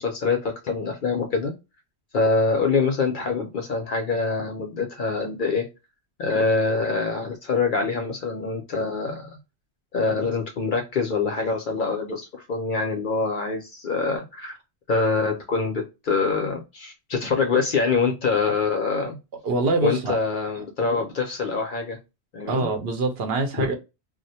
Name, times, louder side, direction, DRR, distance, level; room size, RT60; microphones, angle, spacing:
voice 1, 0.0-1.5 2.1-5.7 6.2-9.3 9.9-14.6 14.9-19.2 19.8-22.0 22.3-22.7 23.6-23.7, left 4 dB, 60° left, 0.6 m, -25 dB
voice 2, 19.4-20.2 22.5-23.7, right 3 dB, 60° right, 0.8 m, -24 dB
2.3 x 2.1 x 2.6 m
omnidirectional pair, 1.2 m